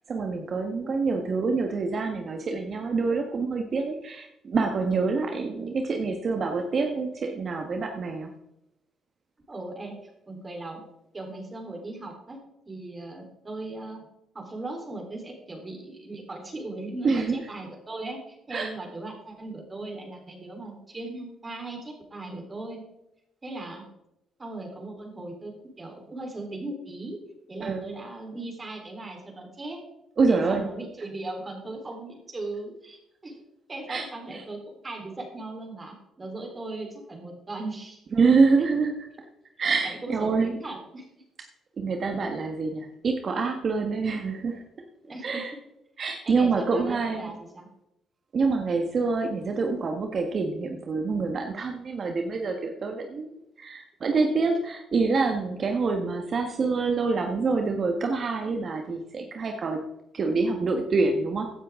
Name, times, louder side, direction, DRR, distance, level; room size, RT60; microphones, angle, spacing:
voice 1, 0.1-8.3 17.0-17.5 18.5-18.7 27.6-27.9 30.2-30.7 33.9-34.0 34.3-34.4 38.1-39.3 39.6-40.5 41.8-44.6 45.2-45.5 46.0-47.3 48.3-53.3 53.6-59.8 60.1-61.5, right 4 dB, 50° right, 4 dB, 1.4 m, -26 dB
voice 2, 0.8-1.2 9.5-10.8 11.1-12.4 12.7-14.1 14.3-22.8 23.4-23.9 24.4-27.2 27.5-29.8 30.3-33.4 33.7-38.0 39.8-41.1 45.0-45.4 46.2-47.7, right 2 dB, 30° right, 2 dB, 3.7 m, -38 dB
15.5 x 10.0 x 3.7 m, 0.86 s
cardioid pair, 90°, 0 cm